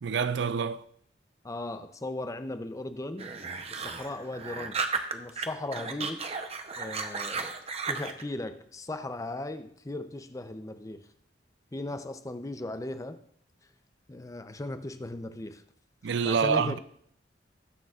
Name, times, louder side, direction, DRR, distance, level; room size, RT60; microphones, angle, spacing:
voice 1, 0.0-0.8 16.0-16.8, right 6 dB, 70° right, 0.4 m, -27 dB
voice 2, 1.4-3.3 3.7-4.8 5.1-6.2 6.8-7.5 7.9-11.1 11.7-13.2 14.1-15.6 16.2-16.8, left 2 dB, 20° left, 0.5 m, -37 dB
sound 1, 3.2-5.4 5.7-8.2, right 5 dB, 35° right, 0.7 m, -34 dB
19.0 x 6.8 x 2.4 m
head